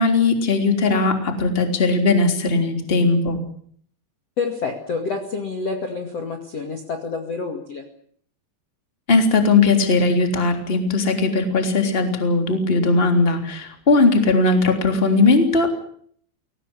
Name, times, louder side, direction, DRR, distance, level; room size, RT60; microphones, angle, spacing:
voice 1, 0.0-3.4 9.1-15.7, left 3 dB, 15° left, 5 dB, 2.8 m, -18 dB
voice 2, 4.4-7.8, left 4 dB, 40° left, 4 dB, 2.7 m, -28 dB
23.0 x 18.5 x 9.9 m, 0.62 s
omnidirectional pair, 5.4 m